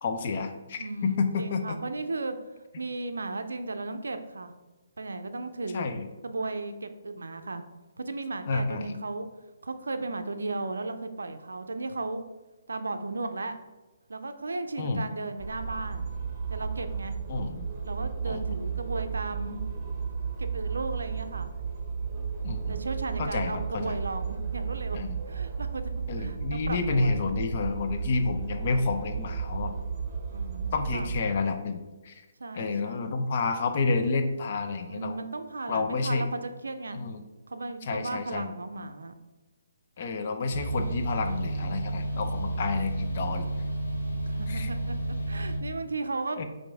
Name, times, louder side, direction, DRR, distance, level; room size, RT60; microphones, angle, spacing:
voice 1, 0.0-1.6 5.7-6.1 8.5-8.9 14.8-15.1 17.3-17.7 18.3-18.4 22.4-22.8 23.2-23.9 24.9-25.2 26.1-29.7 30.7-31.8 32.0-32.2 32.5-35.2 35.7-36.2 36.9-37.2 37.8-38.5 40.0-43.4 44.5-44.7 46.4-46.5, left 4 dB, 45° left, 6 dB, 0.5 m, -29 dB
voice 2, 0.7-2.4 2.8-4.5 5.0-5.9 6.2-7.6 8.0-9.3 9.6-12.2 12.7-13.6 14.1-16.1 16.5-17.2 17.8-19.6 20.4-21.5 22.7-25.0 25.3-25.8 26.2-27.2 30.3-31.1 32.4-33.0 34.9-37.0 37.5-39.1 44.3-46.5, right 3 dB, 80° right, 8 dB, 0.4 m, -35 dB
sound 1, 15.4-31.3, right 6 dB, 30° right, 0.9 m, -34 dB
sound 2, 40.5-45.6, right 2 dB, 85° left, 1.2 m, -31 dB
5.8 x 2.6 x 3.4 m, 1.1 s
figure-of-eight pair, 140°, 0 cm